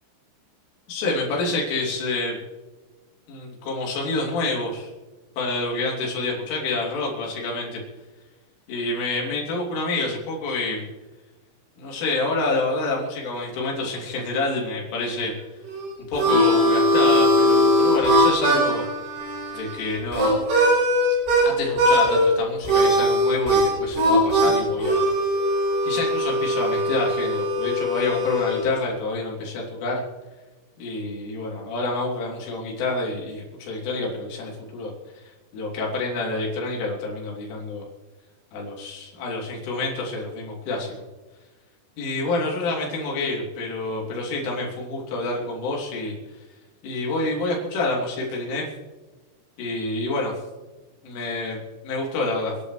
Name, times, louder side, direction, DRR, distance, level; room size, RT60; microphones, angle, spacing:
voice 1, 0.9-2.4 3.3-4.9 5.4-7.8 8.7-10.9 11.8-15.3 16.1-18.8 19.5-20.4 21.4-25.0 25.8-30.0 30.8-34.9 35.5-37.8 38.5-40.9 42.0-46.1 46.8-48.7 49.6-50.3 51.0-52.5, left 2 dB, 75° left, -2 dB, 5.6 m, -28 dB
Harmonica, 15.7-21.5 21.8-22.3 22.6-28.7, equal, 80° right, 8.0 m, -20 dB
28.0 x 11.0 x 3.2 m, 1.2 s
omnidirectional pair, 5.7 m